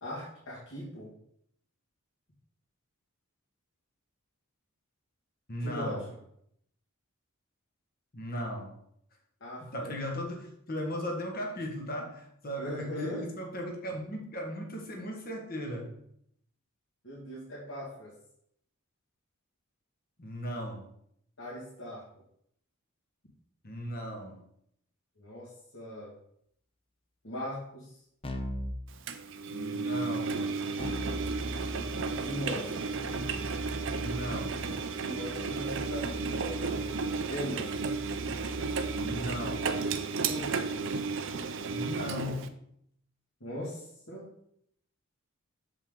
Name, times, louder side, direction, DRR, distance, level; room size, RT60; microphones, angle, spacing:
voice 1, 0.0-1.1 5.6-6.0 9.4-9.9 12.6-13.2 17.0-18.1 21.4-22.1 25.2-26.1 27.2-27.9 31.6-32.8 35.0-36.9 37.2-37.7 40.2-40.7 43.4-44.3, equal, 60° left, -8 dB, 2.1 m, -39 dB
voice 2, 5.5-6.1 8.1-8.8 9.6-16.0 20.2-20.9 23.6-24.4 29.5-30.4 33.9-34.6 38.9-39.7 41.7-42.6, equal, 40° left, 1 dB, 1.4 m, -37 dB
Keyboard (musical), 28.2-28.8 30.8-39.7, equal, 25° left, 0.7 m, -40 dB
Engine, 29.1-42.5, right 4 dB, 60° right, 0.6 m, -33 dB
7.2 x 5.4 x 3.8 m, 0.71 s
head